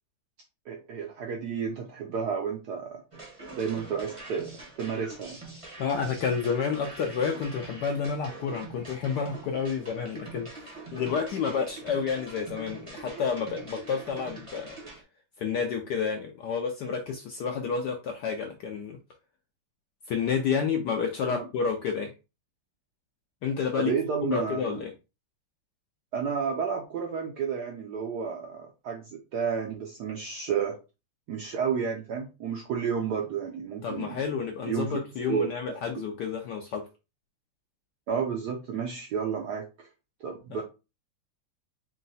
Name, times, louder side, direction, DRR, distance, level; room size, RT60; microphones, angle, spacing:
voice 1, 0.7-3.0 3.5-5.4 21.3-21.5 23.8-24.8 26.1-30.8 31.3-34.2 34.6-35.0 35.3-35.5 38.1-39.9 40.2-40.6, right 6 dB, 75° right, 0.9 m, -31 dB
sound 1, 3.1-15.0, right 3 dB, 30° right, 0.5 m, -44 dB
voice 2, 5.8-14.7 15.4-19.0 20.1-22.1 23.4-23.9 24.2-24.9 33.8-36.8, left 6 dB, 75° left, 0.9 m, -30 dB
4.6 x 2.1 x 4.0 m
omnidirectional pair, 2.4 m